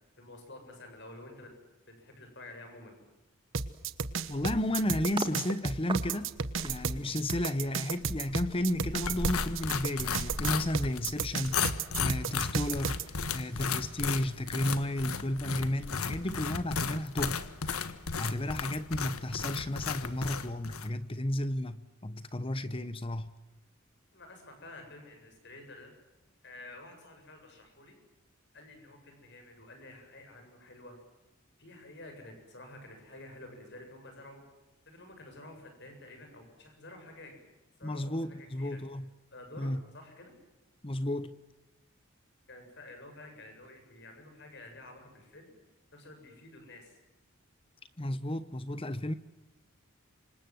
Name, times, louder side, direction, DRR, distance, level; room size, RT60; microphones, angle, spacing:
voice 1, 0.2-1.5 1.9-3.0 24.1-25.9 26.4-28.0 28.5-31.0 31.6-34.4 34.9-37.4 37.8-38.8 39.3-40.3 42.5-45.5 45.9-47.0, left 2 dB, 55° left, 7.7 m, -50 dB
sound 1, 3.5-13.0, right 5 dB, 60° right, 1.3 m, -33 dB
sound 2, 4.1-5.4 5.9-11.5 11.8-12.0, right 1 dB, 25° right, 1.9 m, -41 dB
voice 2, 4.3-6.4 6.6-17.4 18.2-23.3 37.8-39.1 39.6-39.8 40.8-41.4 48.0-49.1, left 1 dB, 25° left, 0.9 m, -33 dB
sound 3, 9.0-20.9, left 6 dB, 85° left, 1.5 m, -35 dB
28.0 x 26.0 x 7.8 m
head